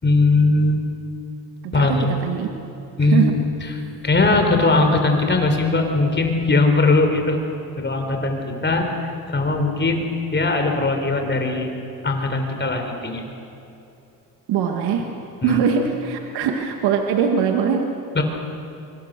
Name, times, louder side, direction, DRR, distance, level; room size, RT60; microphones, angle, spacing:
voice 1, 0.0-0.9 1.7-2.1 3.0-7.4 7.8-11.7 12.0-13.2 15.4-15.6 18.1-18.2, left 3 dB, 30° left, 5 dB, 4.2 m, -20 dB
voice 2, 1.6-2.5 3.1-3.3 14.5-15.1 15.4-17.9, right 7 dB, 80° right, 3 dB, 2.0 m, -21 dB
25.0 x 22.5 x 6.8 m, 2.8 s
supercardioid pair, 80°, 39 cm